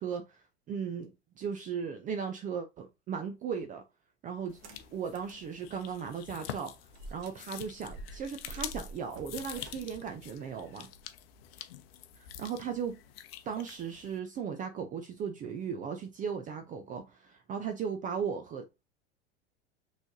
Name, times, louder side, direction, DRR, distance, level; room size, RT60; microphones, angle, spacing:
voice 1, 0.0-3.8 4.2-4.6 4.9-6.7 7.1-10.9 12.2-13.0 13.5-18.8, right 6 dB, 25° right, 0.5 m, -37 dB
sound 1, 4.5-14.2, left 11 dB, 60° left, 0.7 m, -46 dB
sound 2, 4.5-5.5 5.9-6.0 6.9-11.2, right 2 dB, 45° right, 1.0 m, -48 dB
6.0 x 3.2 x 2.6 m
figure-of-eight pair, 90°, 34 cm